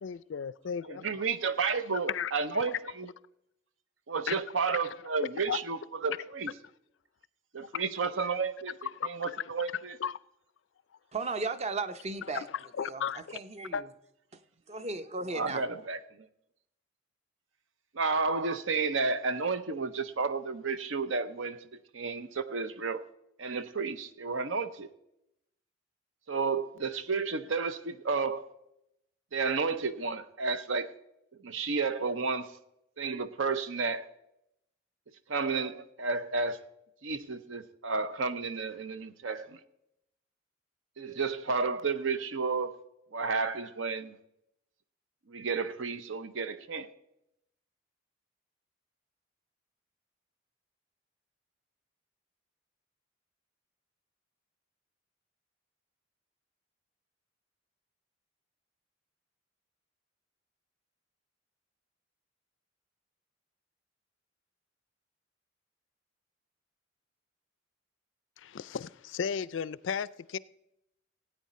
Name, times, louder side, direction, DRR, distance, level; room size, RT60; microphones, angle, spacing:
voice 1, 0.0-1.1 2.1-2.3 4.3-4.4 5.5-5.6 7.7-7.8 9.0-9.1 10.0-10.1 12.3-12.4 12.8-13.4 13.7-13.8 68.4-70.4, left 7 dB, 70° left, 0.4 m, -34 dB
voice 2, 0.8-3.1 4.1-6.5 7.5-8.7 9.0-10.0 15.3-16.3 17.9-21.6 21.9-23.0 23.4-24.9 26.3-28.5 29.3-30.9 31.4-32.6 33.0-34.1 35.3-36.6 37.0-39.6 41.0-42.8 43.1-44.2 45.3-46.9, right 4 dB, 80° right, 0.7 m, -32 dB
voice 3, 11.1-12.5 12.8-13.9 14.3-14.4 14.7-15.9, right 3 dB, 35° right, 0.6 m, -36 dB
16.5 x 9.0 x 4.2 m
head